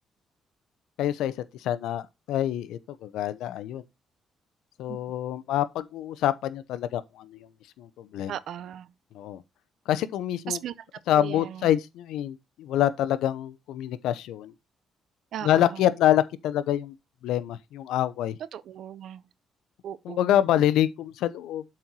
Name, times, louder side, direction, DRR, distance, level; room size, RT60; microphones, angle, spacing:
voice 1, 1.0-3.8 4.8-7.5 7.8-8.3 9.1-9.4 9.9-10.6 11.1-14.5 15.4-16.9 17.2-18.4 20.0-21.6, left 12 dB, 85° left, 0.7 m, -26 dB
voice 2, 8.3-8.9 10.5-10.7 11.1-11.7 15.3-15.8 18.5-19.2 19.8-20.4, right 10 dB, 70° right, 0.6 m, -37 dB
7.6 x 4.3 x 4.7 m
cardioid pair, 90°, 0 cm